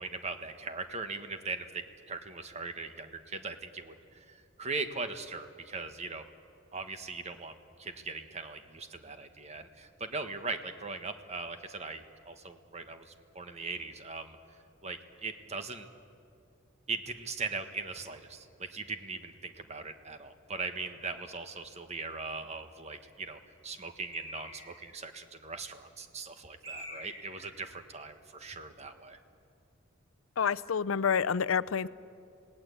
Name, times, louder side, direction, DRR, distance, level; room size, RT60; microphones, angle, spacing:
voice 1, 0.0-6.2 6.7-14.4 14.8-15.9 16.9-29.2, right 3 dB, 35° right, 8 dB, 1.4 m, -40 dB
Bird, 24.1-25.0 26.6-27.6, equal, 85° right, 5.8 m, -45 dB
voice 2, 30.4-31.9, left 6 dB, 85° left, 18 dB, 0.5 m, -28 dB
27.5 x 18.0 x 8.4 m, 2.5 s
head